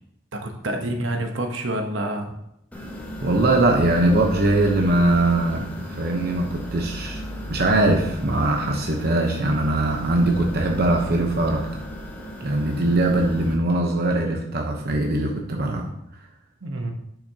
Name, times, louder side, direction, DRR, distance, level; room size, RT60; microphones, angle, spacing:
voice 1, 0.3-2.4 16.6-16.9, right 1 dB, 75° right, 4 dB, 1.0 m, -28 dB
sound 1, 2.7-13.5, equal, 10° left, 1.2 m, -35 dB
voice 2, 3.2-7.2 7.5-11.8 12.4-15.9, right 2 dB, 55° right, 2 dB, 0.9 m, -21 dB
10.5 x 5.8 x 2.8 m, 0.78 s
head